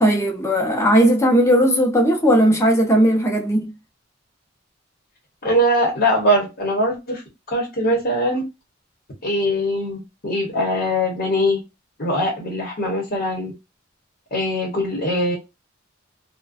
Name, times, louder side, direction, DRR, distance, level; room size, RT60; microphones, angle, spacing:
voice 1, 0.0-3.7, equal, 15° left, 0.6 m, -17 dB
voice 2, 5.4-7.2 7.5-8.4 9.2-11.6 12.0-13.5 14.3-15.4, equal, 50° left, 0.9 m, -21 dB
2.5 x 2.1 x 2.3 m
head